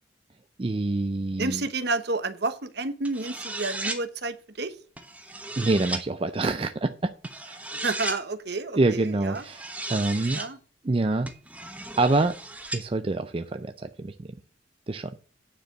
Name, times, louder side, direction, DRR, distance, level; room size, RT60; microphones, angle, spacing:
voice 1, 0.6-1.7 5.6-7.1 7.5-7.6 8.8-10.4 10.8-11.3 12.0-12.3 12.7-14.3 14.9-15.1, right 2 dB, 30° right, 9 dB, 0.4 m, -26 dB
voice 2, 1.4-4.7 7.8-9.4 10.3-10.6, right 3 dB, 55° right, 11 dB, 1.0 m, -30 dB
sound 1, 3.0-4.0 5.0-6.0 7.2-8.2 9.4-10.5 11.3-12.8, right 2 dB, 5° right, 1.0 m, -35 dB
9.4 x 5.0 x 7.2 m, 0.39 s
head